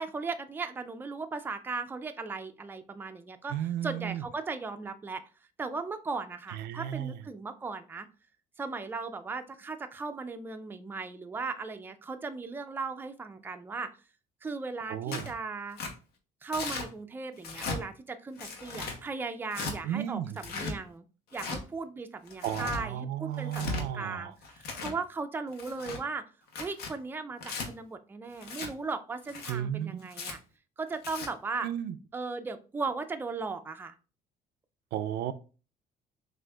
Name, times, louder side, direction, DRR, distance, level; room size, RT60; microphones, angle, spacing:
voice 1, 0.0-5.2 5.6-8.1 8.6-13.9 14.4-15.8 16.4-21.1 21.3-26.2 26.6-30.4 30.8-31.7 32.1-33.9, right 4 dB, 10° right, 8 dB, 0.4 m, -37 dB
voice 2, 3.5-4.2 6.5-7.2 14.9-15.3 19.8-20.4 22.4-24.3 29.5-30.1 31.6-31.9 34.9-35.3, right 11 dB, 80° right, 11 dB, 0.4 m, -34 dB
Tearing, 15.1-15.3 15.8-15.9 16.5-16.9 17.4-17.8 18.4-19.0 19.5-19.7 20.4-20.7 21.3-21.6 22.3-22.8 23.4-23.8 24.4-25.0 25.5-26.0 26.5-26.9 27.4-27.7 28.4-28.7 29.2-29.5 30.1-30.3 30.9-31.3, left 3 dB, 70° left, 0.9 m, -36 dB
6.1 x 2.5 x 2.3 m, 0.34 s
cardioid pair, 110°, 17 cm